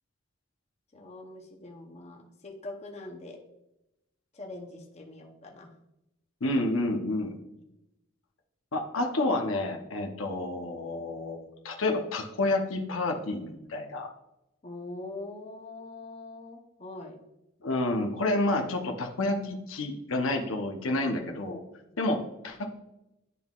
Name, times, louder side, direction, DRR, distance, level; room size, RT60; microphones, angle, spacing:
voice 1, 0.9-3.4 4.3-5.7 7.6-7.7 14.6-17.2, left 2 dB, 30° left, 0 dB, 0.8 m, -43 dB
voice 2, 6.4-7.4 8.7-14.1 17.6-21.6 22.0-22.7, left 2 dB, 80° left, 3 dB, 0.8 m, -29 dB
11.0 x 3.8 x 2.4 m, 0.90 s
head